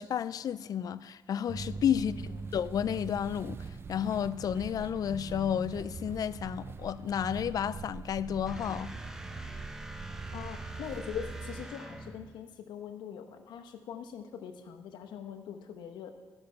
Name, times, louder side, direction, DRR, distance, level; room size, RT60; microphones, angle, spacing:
voice 1, 0.0-2.1 2.5-3.6 3.9-8.9, left 9 dB, 55° left, 0.3 m, -31 dB
sound 1, 1.5-11.7, right 5 dB, 30° right, 0.4 m, -43 dB
voice 2, 1.9-2.5 10.3-16.1, left 8 dB, 85° left, 0.9 m, -42 dB
sound 2, 8.5-12.4, right 2 dB, 5° right, 0.9 m, -43 dB
12.5 x 6.8 x 5.6 m
cardioid pair, 95°, 8 cm